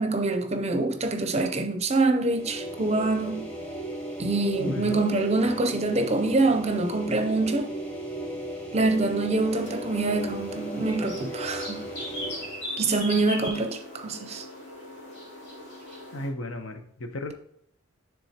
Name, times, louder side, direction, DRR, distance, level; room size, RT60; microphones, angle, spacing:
voice 1, 0.0-3.5 4.2-7.8 8.7-11.9 12.8-14.4, right 3 dB, 30° right, 0.5 m, -25 dB
sound 1, 2.2-12.6, right 1 dB, 5° left, 1.0 m, -36 dB
voice 2, 4.6-5.0 16.1-17.3, left 1 dB, 75° left, 0.8 m, -34 dB
sound 2, 9.5-16.3, left 1 dB, 55° left, 2.3 m, -39 dB
10.0 x 3.5 x 2.8 m
head